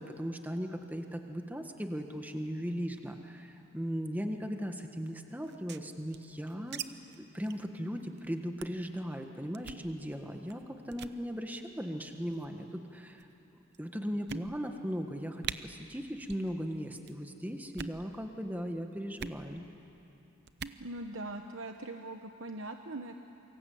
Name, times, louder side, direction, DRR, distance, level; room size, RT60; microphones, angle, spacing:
voice 1, 0.0-6.8 7.2-13.3 13.8-19.7, equal, 10° right, 4 dB, 1.5 m, -38 dB
sound 1, 5.4-6.9 7.1-7.2 7.5-7.7 8.0-8.2 8.6-8.9 9.5-9.9 10.5-10.6 10.9-11.2 12.1-12.5 13.2-13.3 13.7-13.8 14.3-14.8 15.1-15.2 15.4-15.6 16.2-16.5 16.8-17.2 17.6-18.0 19.2-19.4 20.5-20.8, right 7 dB, 55° right, 0.7 m, -42 dB
voice 2, 20.8-23.1, right 2 dB, 80° right, 5 dB, 1.1 m, -41 dB
28.0 x 24.0 x 8.6 m, 2.8 s
head